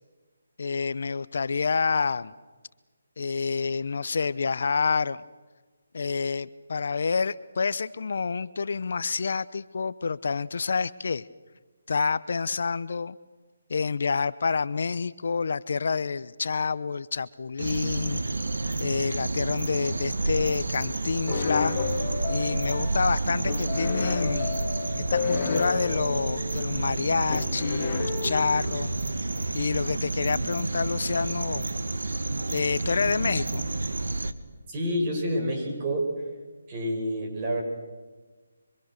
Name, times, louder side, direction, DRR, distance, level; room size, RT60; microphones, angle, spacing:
voice 1, 0.6-2.3 3.2-5.2 5.9-11.2 11.9-13.2 13.7-18.2 18.8-21.8 22.3-24.5 25.1-28.9 29.5-31.7 32.5-33.6, left 5 dB, 60° left, 16 dB, 0.8 m, -28 dB
sound 1, 17.6-34.3, right 2 dB, 80° right, 1.9 m, -30 dB
sound 2, 21.3-29.0, left 5 dB, 30° left, 2.5 m, -32 dB
voice 2, 34.7-36.1 36.7-37.6, equal, 25° right, 1 dB, 7.6 m, -28 dB
27.5 x 25.0 x 6.7 m, 1.3 s
figure-of-eight pair, 160°, 0 cm